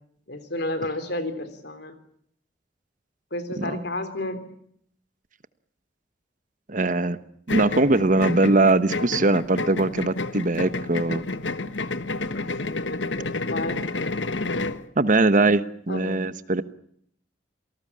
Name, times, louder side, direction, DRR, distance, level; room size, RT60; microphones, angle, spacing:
voice 1, 0.3-2.0 3.3-4.4 12.3-13.8 15.9-16.3, left 1 dB, 65° left, 11 dB, 3.7 m, -32 dB
voice 2, 6.7-7.2 7.5-11.2 15.0-16.6, right 2 dB, 45° right, 13 dB, 1.2 m, -21 dB
sound 1, 7.5-14.8, left 3 dB, 80° left, 1.4 m, -30 dB
27.5 x 19.0 x 8.6 m, 0.67 s
head